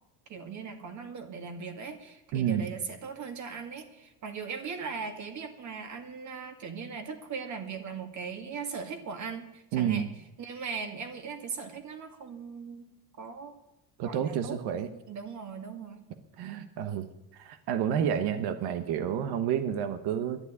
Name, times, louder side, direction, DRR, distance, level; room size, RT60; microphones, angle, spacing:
voice 1, 0.3-10.1 10.4-12.9 13.2-13.5 14.0-14.6 15.1-16.0, right 5 dB, 45° right, 6 dB, 2.2 m, -39 dB
voice 2, 2.3-2.7 9.7-10.1 14.0-14.9 16.4-17.1 17.3-20.4, right 9 dB, 70° right, 10 dB, 1.1 m, -29 dB
11.5 x 9.6 x 9.7 m, 0.93 s
cardioid pair, 135°, 40 cm